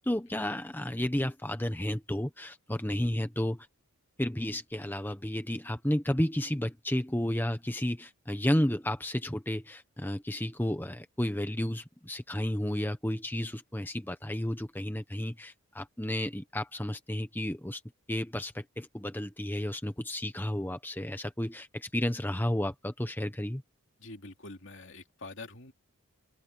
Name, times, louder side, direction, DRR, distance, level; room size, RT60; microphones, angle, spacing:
voice 1, 0.0-3.7 4.2-17.8 18.1-23.6, left 1 dB, 10° left, 1.1 m, -32 dB
voice 2, 24.0-25.7, left 2 dB, 55° left, 2.9 m, -46 dB
open air
head